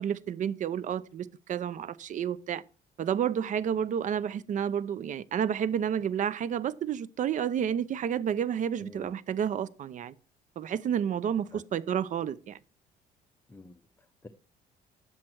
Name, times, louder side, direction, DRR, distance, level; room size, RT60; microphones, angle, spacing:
voice 1, 0.0-2.6 3.0-10.1 10.6-12.6, right 8 dB, 50° right, 0.6 m, -30 dB
voice 2, 8.8-9.1 11.5-11.6 13.5-14.3, left 3 dB, 15° left, 0.7 m, -49 dB
10.0 x 7.6 x 4.5 m
cardioid pair, 110°, 17 cm